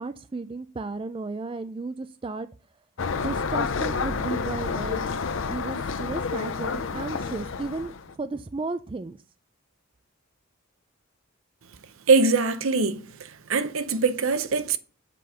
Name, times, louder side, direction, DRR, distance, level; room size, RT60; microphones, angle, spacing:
voice 1, 0.0-2.5 3.2-5.1 5.5-9.2, right 3 dB, 25° right, 0.3 m, -34 dB
sound 1, 3.0-8.1, left 5 dB, 65° left, 0.6 m, -29 dB
voice 2, 12.1-13.0 13.5-14.8, right 4 dB, 70° right, 0.7 m, -22 dB
7.5 x 5.1 x 5.6 m
head